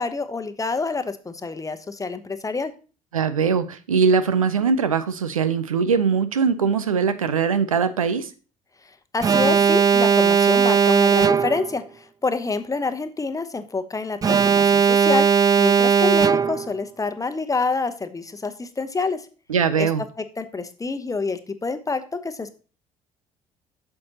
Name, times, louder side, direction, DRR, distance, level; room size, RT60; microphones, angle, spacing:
voice 1, 0.0-2.7 9.1-15.3 15.6-19.2 19.8-19.9 20.4-22.5, left 4 dB, 20° left, 9 dB, 0.9 m, -27 dB
voice 2, 3.1-8.3 19.5-20.0, right 6 dB, 90° right, 12 dB, 0.5 m, -21 dB
Alarm, 9.2-11.8 14.2-16.8, right 6 dB, 20° right, 0.3 m, -18 dB
8.6 x 6.6 x 2.8 m, 0.36 s
figure-of-eight pair, 55°, 17 cm